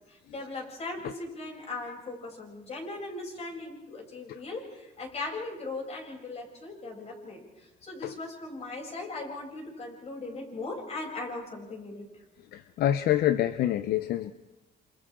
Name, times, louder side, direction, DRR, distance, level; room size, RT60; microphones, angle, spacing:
voice 1, 0.1-7.4 7.8-12.0, left 2 dB, 40° left, -1 dB, 7.6 m, -38 dB
voice 2, 12.5-14.3, left 12 dB, 65° left, 12 dB, 0.8 m, -26 dB
28.5 x 28.0 x 3.8 m, 0.97 s
cardioid pair, 110°, 17 cm